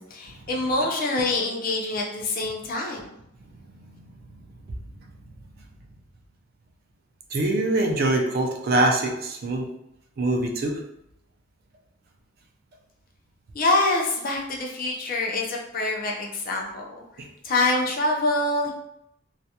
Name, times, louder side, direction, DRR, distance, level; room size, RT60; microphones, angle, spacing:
voice 1, 0.0-3.0 13.5-17.0 17.4-18.7, left 2 dB, 45° left, 0 dB, 0.4 m, -25 dB
voice 2, 7.3-9.7 10.2-10.8, right 2 dB, 45° right, 2 dB, 0.4 m, -23 dB
2.4 x 2.2 x 2.7 m, 0.79 s
head